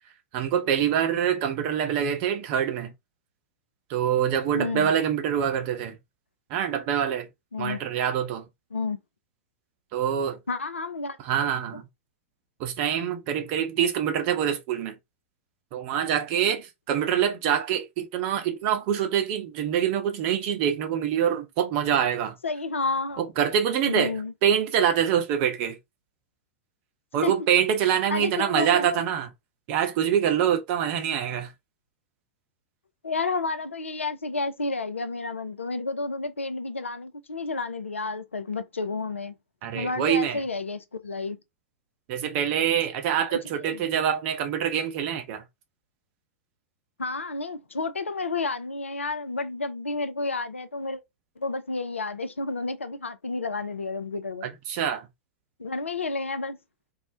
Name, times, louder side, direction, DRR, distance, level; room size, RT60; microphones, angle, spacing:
voice 1, 0.3-2.9 3.9-6.0 6.5-7.3 7.6-8.4 9.9-10.4 11.2-11.8 12.6-14.9 15.7-22.3 23.2-24.1 24.4-25.8 27.1-29.3 29.7-31.5 39.6-40.4 42.1-45.4 54.4-55.1, right 9 dB, 40° right, 0.6 m, -25 dB
voice 2, 4.5-4.9 7.5-7.8 8.7-9.0 10.5-11.2 11.7-11.8 22.4-23.2 23.8-24.3 27.2-27.3 28.1-29.1 33.0-39.3 39.7-41.4 43.3-43.8 47.0-51.0 51.4-54.5 55.6-56.6, left 3 dB, 80° left, 0.4 m, -31 dB
2.3 x 2.1 x 2.6 m
figure-of-eight pair, 95°, 7 cm